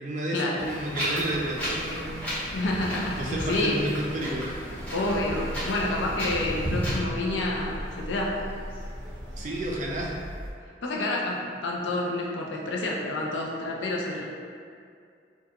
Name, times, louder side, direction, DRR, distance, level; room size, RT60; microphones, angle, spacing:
voice 1, 0.0-2.2 3.2-4.5 9.4-10.2, right 1 dB, 40° right, -2 dB, 0.3 m, -31 dB
Wind, 0.6-7.0, equal, 10° left, 0.6 m, -33 dB
sound 1, 1.6-10.5, equal, 90° right, 0.5 m, -40 dB
voice 2, 2.5-3.8 4.9-8.4 10.8-14.2, left 2 dB, 85° left, -2 dB, 0.4 m, -29 dB
sound 2, 3.9-10.3, equal, 45° left, 0.7 m, -45 dB
2.3 x 2.2 x 2.8 m, 2.3 s
head